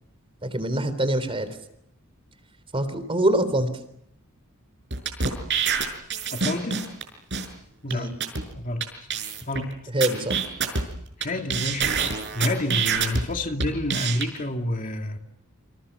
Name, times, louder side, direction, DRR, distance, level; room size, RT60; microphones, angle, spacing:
voice 1, 0.4-1.6 2.7-3.7 7.9-8.1 9.9-10.4, right 1 dB, 25° right, 12 dB, 3.6 m, -24 dB
sound 1, 4.9-7.0 7.3-7.5 7.9-8.0 8.2-8.4 8.8-8.9 9.1-9.6 10.0-11.2 11.5-13.2 13.6-14.2, right 6 dB, 55° right, 6.0 m, -26 dB
voice 2, 6.3-6.9 7.8-8.1 8.5-8.8 9.5-9.9 11.2-15.2, left 1 dB, 40° left, 4 dB, 2.4 m, -29 dB
29.0 x 26.5 x 7.1 m, 0.75 s
head